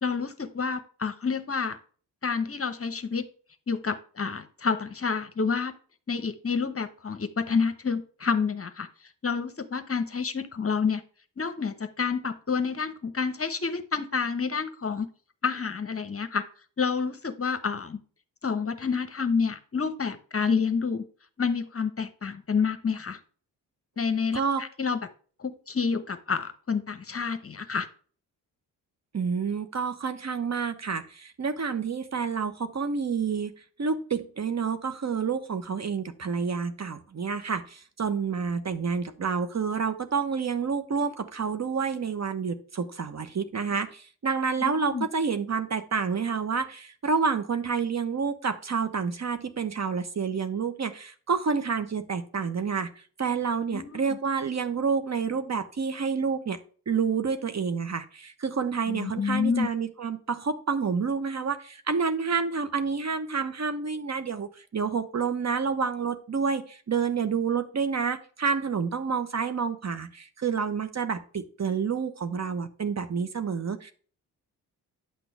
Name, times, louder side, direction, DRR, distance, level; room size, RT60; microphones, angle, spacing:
voice 1, 0.0-1.8 2.2-3.2 3.7-5.7 6.1-8.9 9.2-11.0 11.4-15.1 15.4-16.4 16.8-18.0 18.4-21.0 21.4-23.2 24.0-25.0 25.4-27.9 44.6-45.1 53.7-54.0 58.9-59.7, left 5 dB, 30° left, 11 dB, 1.1 m, -28 dB
voice 2, 29.1-33.5 33.8-56.6 56.9-73.9, right 5 dB, 35° right, 10 dB, 1.0 m, -29 dB
9.5 x 6.0 x 3.3 m, 0.43 s
hypercardioid pair, 40°, 47 cm